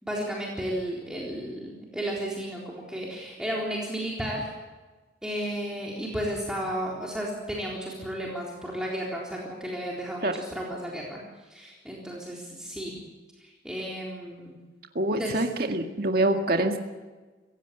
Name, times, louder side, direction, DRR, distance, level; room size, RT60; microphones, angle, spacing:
voice 1, 0.0-4.5 5.2-11.2 11.5-13.0 13.4-14.5 15.1-15.5, equal, 5° right, -4 dB, 3.8 m, -33 dB
voice 2, 15.0-16.8, right 1 dB, 50° right, 4 dB, 2.0 m, -25 dB
26.5 x 16.5 x 8.2 m, 1.3 s
head